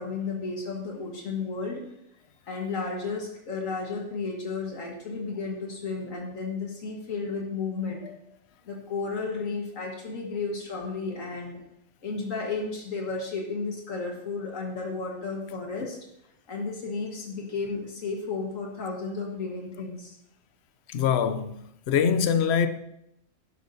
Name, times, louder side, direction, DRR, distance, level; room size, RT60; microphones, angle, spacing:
voice 1, 0.0-1.8 2.5-8.0 8.7-11.6 12.0-16.0 16.5-20.2, left 4 dB, 85° left, 2.0 m, -33 dB
voice 2, 20.9-22.7, left 7 dB, 60° left, 0.9 m, -24 dB
12.0 x 10.5 x 2.8 m
omnidirectional pair, 1.3 m